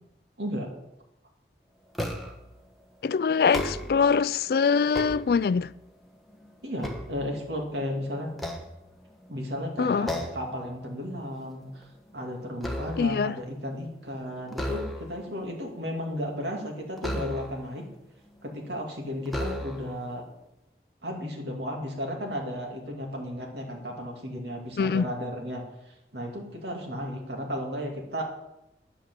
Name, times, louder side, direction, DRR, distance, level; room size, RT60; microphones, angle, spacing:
voice 1, 0.4-0.7 6.6-8.3 9.3-11.9 12.1-17.9 18.4-20.2 21.0-28.2, equal, 75° right, 2.7 m, -34 dB
sound 1, 1.9-2.5 3.4-4.2 4.7-5.8 6.3-7.8 8.3-9.3 10.1-10.6 10.9-11.2 11.6-13.3 14.5-15.3 17.0-17.8 18.5-18.6 19.3-20.0, equal, ahead, 1.1 m, -35 dB
voice 2, 3.0-5.7 9.8-10.1 13.0-13.4 24.8-25.1, left 5 dB, 55° left, 0.3 m, -23 dB
9.9 x 8.1 x 7.7 m
head